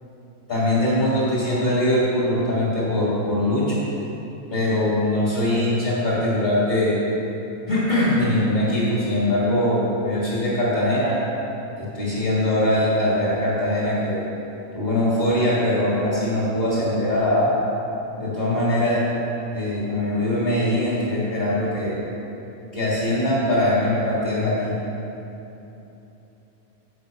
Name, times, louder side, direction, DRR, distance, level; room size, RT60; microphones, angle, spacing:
voice 1, 0.5-3.8 4.5-7.0 7.7-11.2 11.8-14.2 14.7-17.5 18.2-19.0 19.5-22.0 22.7-24.7, left 1 dB, 45° left, -7 dB, 2.9 m, -22 dB
11.0 x 7.7 x 5.3 m, 3.0 s
omnidirectional pair, 1.4 m